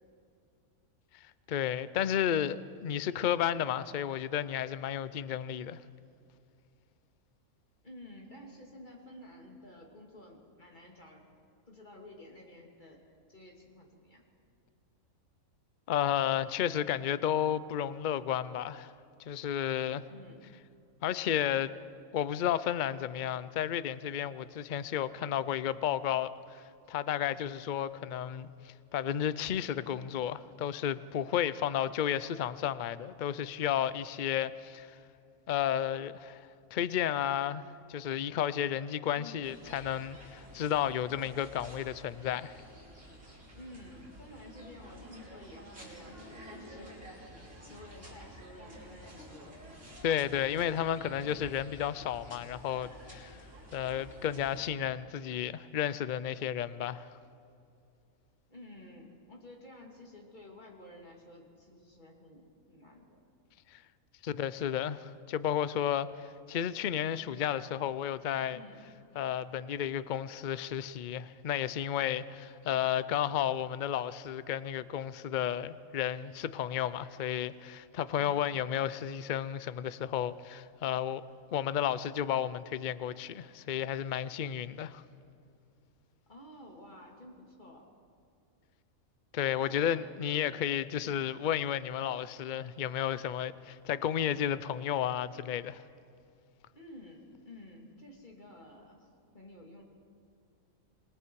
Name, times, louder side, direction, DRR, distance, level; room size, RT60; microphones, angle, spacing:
voice 1, 1.5-5.8 15.9-18.9 19.3-20.0 21.0-21.7 22.1-34.9 35.5-36.4 36.7-37.6 37.9-42.6 50.0-53.4 53.7-57.1 63.7-63.8 64.2-68.6 69.1-81.2 81.5-85.0 89.3-95.8, left 10 dB, 75° left, 0.4 m, -32 dB
voice 2, 7.8-11.3 11.7-14.2 20.1-20.4 39.1-39.5 43.5-47.0 47.6-49.6 58.5-63.2 68.5-68.8 86.3-87.9 89.6-90.2 96.7-99.1 99.3-99.8, left 1 dB, 30° left, 2.8 m, -51 dB
sound 1, 39.4-54.7, equal, 40° right, 5.4 m, -51 dB
28.0 x 21.0 x 4.7 m
omnidirectional pair, 1.6 m